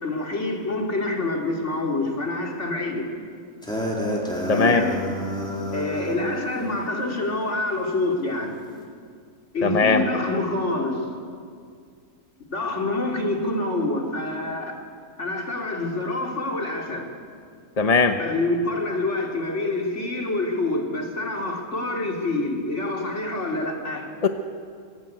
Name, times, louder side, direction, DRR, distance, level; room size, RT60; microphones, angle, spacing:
voice 1, 0.0-3.1 4.5-5.0 5.7-8.6 9.5-11.0 12.5-14.8 15.2-17.1 18.2-24.1, left 2 dB, 50° left, 1 dB, 3.2 m, -26 dB
sound 1, 3.6-6.2, equal, 5° left, 3.7 m, -29 dB
voice 2, 4.5-4.8 9.6-10.0 17.8-18.2 24.2-24.3, left 4 dB, 30° left, 7 dB, 0.9 m, -19 dB
22.0 x 17.5 x 9.3 m, 2.1 s
omnidirectional pair, 1.5 m